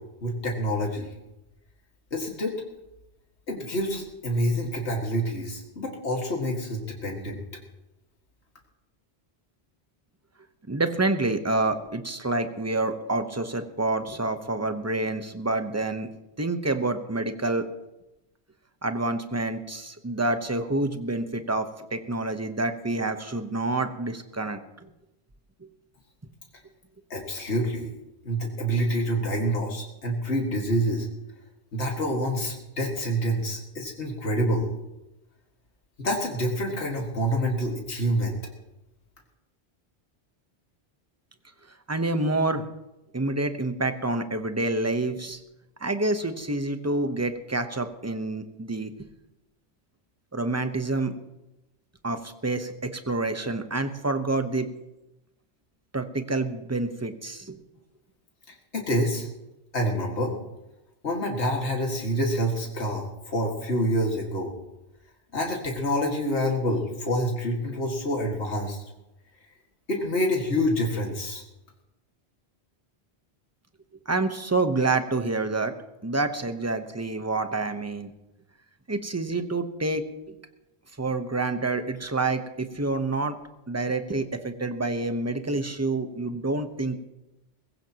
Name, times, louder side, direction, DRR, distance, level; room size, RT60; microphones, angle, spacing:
voice 1, 0.2-1.1 2.1-2.6 3.5-7.4 27.1-27.9 28.3-31.1 31.7-34.7 36.0-38.3 58.5-59.3 59.7-60.3 61.0-64.5 65.3-68.8 69.9-71.4, equal, 80° left, 0 dB, 2.3 m, -27 dB
voice 2, 10.7-16.1 16.4-17.7 18.8-24.9 41.9-42.7 43.1-45.4 45.8-48.9 50.3-51.2 52.0-54.7 55.9-57.6 74.1-75.7 76.0-78.1 78.9-80.3 81.0-83.4 83.7-87.0, right 2 dB, 15° right, 8 dB, 0.9 m, -28 dB
21.5 x 15.5 x 3.0 m, 0.96 s
omnidirectional pair, 1.1 m